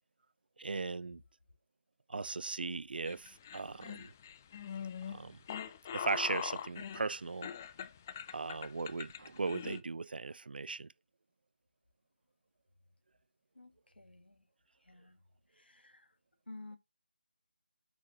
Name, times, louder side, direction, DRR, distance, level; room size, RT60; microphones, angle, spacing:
voice 1, 0.6-1.2 2.1-4.1 5.1-5.4 5.9-7.5 8.3-10.9, right 4 dB, 65° right, 0.3 m, -38 dB
sound 1, 3.0-9.8, left 8 dB, 15° left, 0.3 m, -42 dB
voice 2, 13.5-14.5 14.8-15.2 15.5-16.2 16.5-16.8, left 2 dB, 85° left, 1.7 m, -53 dB
8.2 x 6.0 x 2.8 m
figure-of-eight pair, 160°, 5 cm